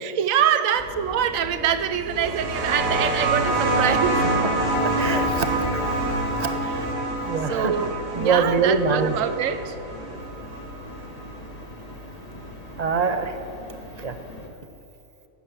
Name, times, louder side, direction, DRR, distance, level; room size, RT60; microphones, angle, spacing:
voice 1, 0.0-4.4 6.6-7.2 7.5-9.7, right 9 dB, 65° right, 11 dB, 1.2 m, -25 dB
sound 1, 0.7-14.5, left 1 dB, 25° left, 1.9 m, -39 dB
sound 2, 2.1-11.3 12.5-12.6, right 2 dB, 85° right, 4.2 m, -26 dB
voice 2, 4.8-6.0 6.4-6.5 7.3-7.7 8.1-9.2 12.8-13.4 14.0-14.1, right 5 dB, 30° right, 8 dB, 0.9 m, -24 dB
15.5 x 7.7 x 10.0 m, 2.8 s
omnidirectional pair, 1.6 m